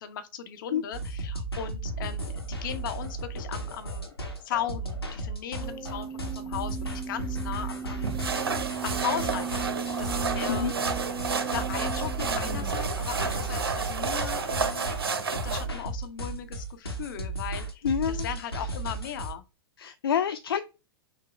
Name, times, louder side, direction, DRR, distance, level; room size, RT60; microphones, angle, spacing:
voice 1, 0.0-4.1 4.4-8.2 8.8-9.7 10.0-10.7 11.5-14.9 15.4-19.4, left 9 dB, 60° left, 0.8 m, -37 dB
sound 1, 0.9-19.3, right 2 dB, 90° left, 1.0 m, -35 dB
sound 2, 5.6-12.7, right 6 dB, ahead, 0.5 m, -37 dB
sound 3, 8.0-15.7, right 5 dB, 75° right, 0.7 m, -31 dB
voice 2, 17.8-18.3 19.8-20.6, left 8 dB, 75° left, 0.4 m, -27 dB
6.2 x 2.1 x 3.2 m
figure-of-eight pair, 100°, 13 cm